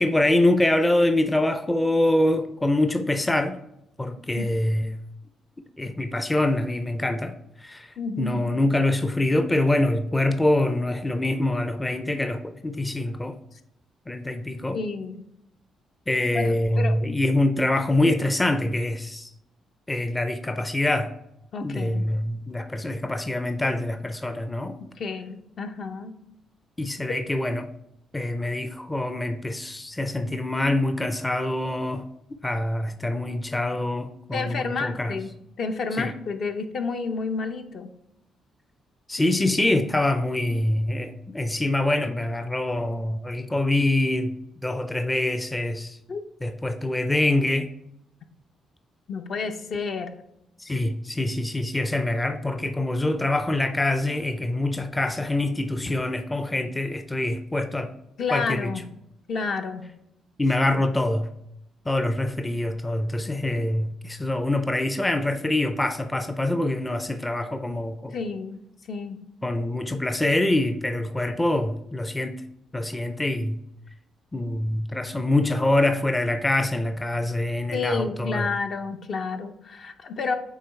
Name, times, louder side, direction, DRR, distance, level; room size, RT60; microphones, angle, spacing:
voice 1, 0.0-3.6 4.0-4.9 5.8-7.3 7.6-13.4 14.1-14.8 16.1-19.3 19.9-21.1 21.6-24.7 26.8-27.7 28.1-32.1 32.4-35.1 36.0-36.1 39.1-44.3 44.6-46.0 46.4-47.7 50.6-57.9 58.3-58.7 60.4-61.3 61.9-68.1 69.4-72.4 72.7-73.6 74.3-78.5, left 1 dB, 15° left, 0.5 m, -25 dB
voice 2, 8.0-8.4 14.7-15.2 16.3-17.0 21.5-22.1 25.0-26.1 27.1-27.2 34.3-35.3 35.6-37.9 46.1-46.2 49.1-50.1 58.2-58.9 59.3-59.9 68.1-68.6 68.9-69.2 71.3-71.4 77.7-80.4, left 4 dB, 55° left, 0.7 m, -30 dB
8.4 x 3.1 x 4.4 m
cardioid pair, 90°, 0 cm